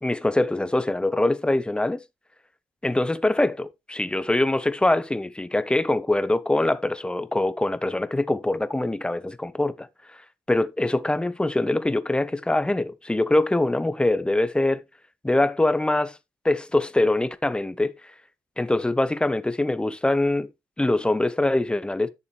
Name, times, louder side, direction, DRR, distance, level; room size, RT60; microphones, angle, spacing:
voice 1, 0.0-2.0 2.8-9.9 10.5-14.8 15.2-16.2 16.4-17.9 18.6-20.5 20.8-22.1, left 2 dB, 10° left, 1.0 m, -23 dB
11.5 x 6.8 x 3.3 m
figure-of-eight pair, 40°, 8 cm